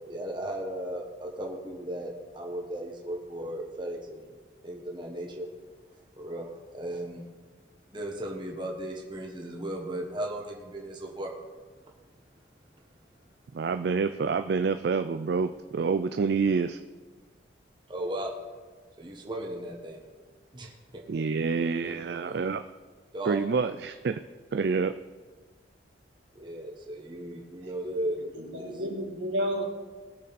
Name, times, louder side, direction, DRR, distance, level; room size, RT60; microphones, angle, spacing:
voice 1, 0.1-4.3 4.6-5.5 6.2-7.2 7.9-11.3 17.9-18.3 19.0-20.0 20.5-21.2 21.8-22.4 23.1-23.4 26.3-28.2 28.6-28.7, right 1 dB, 25° right, -1 dB, 1.3 m, -36 dB
voice 2, 13.5-16.8 21.1-22.6 23.3-24.2 24.5-24.9, right 5 dB, 60° right, 9 dB, 0.3 m, -27 dB
voice 3, 28.2-29.6, equal, 85° right, -1 dB, 2.3 m, -32 dB
19.0 x 6.6 x 4.1 m, 1.4 s
head